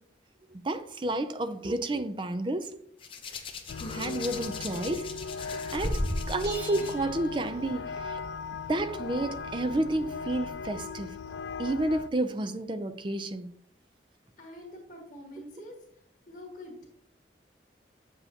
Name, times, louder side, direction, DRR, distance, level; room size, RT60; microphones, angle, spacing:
voice 1, 0.5-2.7 3.9-5.1 5.7-8.2 8.7-11.2 11.6-13.5 15.5-15.6, right 2 dB, 30° right, 0.4 m, -31 dB
Hands, 3.0-6.9 8.0-8.2, left 2 dB, 30° left, 0.8 m, -36 dB
sound 1, 3.7-12.1, left 5 dB, 75° left, 0.3 m, -38 dB
sound 2, 6.4-8.0, right 3 dB, 70° right, 1.8 m, -45 dB
voice 2, 14.4-15.7 16.3-16.9, left 1 dB, 45° left, 1.7 m, -45 dB
8.0 x 6.9 x 2.9 m
head